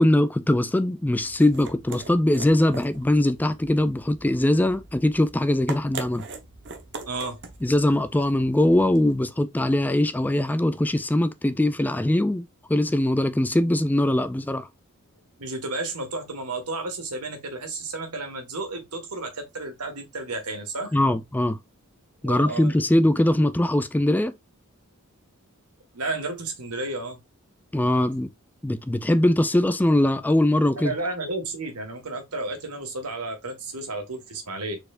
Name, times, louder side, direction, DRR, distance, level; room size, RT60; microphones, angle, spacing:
voice 1, 0.0-6.3 7.6-14.7 20.9-21.6 22.2-24.3 27.7-28.3 28.6-30.9, left 1 dB, 10° left, 0.3 m, -21 dB
sound 1, 1.0-9.2, right 4 dB, 55° right, 1.0 m, -42 dB
voice 2, 7.1-7.4 15.4-20.9 22.2-22.8 25.9-27.2 30.8-34.8, right 2 dB, 80° right, 1.7 m, -32 dB
4.5 x 4.3 x 2.5 m
head